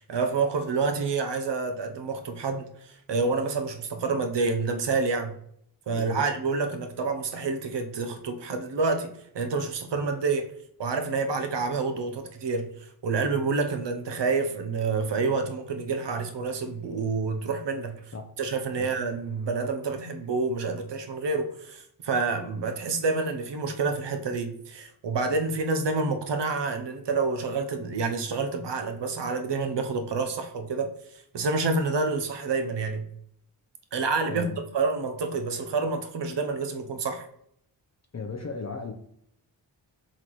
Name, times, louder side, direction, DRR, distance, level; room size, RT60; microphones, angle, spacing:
voice 1, 0.0-5.3 5.9-10.5 10.8-18.0 18.4-30.9 31.3-33.1 33.9-37.3, right 4 dB, 60° right, 0.8 m, -28 dB
voice 2, 5.9-6.3 18.1-18.3 18.8-18.9 34.3-34.6 38.1-38.9, left 4 dB, 35° left, 0.6 m, -36 dB
4.2 x 3.8 x 3.1 m
cardioid pair, 45°, 47 cm